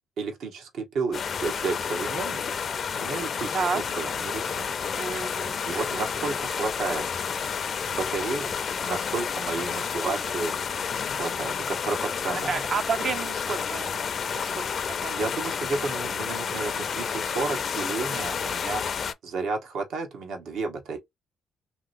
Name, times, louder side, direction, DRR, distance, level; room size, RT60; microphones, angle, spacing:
voice 1, 0.2-2.4 3.0-4.7 5.7-7.1 7.9-10.5 11.1-12.6 15.1-18.8 19.2-21.0, right 4 dB, 75° right, 0.9 m, -32 dB
sound 1, 1.1-19.1, left 6 dB, 50° left, 0.4 m, -30 dB
voice 2, 3.5-4.0 5.0-6.0 10.0-10.2 12.5-15.1, right 5 dB, 55° right, 0.5 m, -32 dB
3.1 x 2.8 x 2.5 m
cardioid pair, 90°, 0 cm